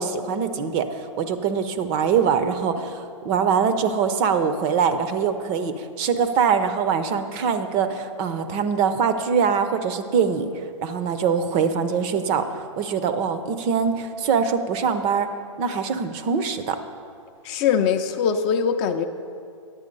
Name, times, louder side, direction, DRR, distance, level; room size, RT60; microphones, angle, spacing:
voice 1, 0.0-12.5 12.8-15.3 15.6-16.8, right 6 dB, 35° right, 10 dB, 0.6 m, -23 dB
voice 2, 17.4-19.1, left 7 dB, 30° left, 7 dB, 0.5 m, -22 dB
9.8 x 7.9 x 5.3 m, 2.4 s
hypercardioid pair, 135°, 17 cm